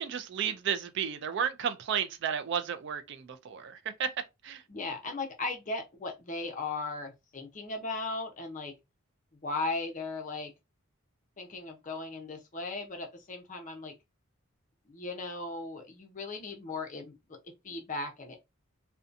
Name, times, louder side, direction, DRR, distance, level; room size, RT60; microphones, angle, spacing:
voice 1, 0.0-4.1 4.4-4.6, right 7 dB, 55° right, 0.3 m, -33 dB
voice 2, 4.7-8.7 9.4-10.5 11.4-13.9 14.9-17.4 17.6-18.4, left 3 dB, 35° left, 0.6 m, -37 dB
2.6 x 2.2 x 2.5 m
head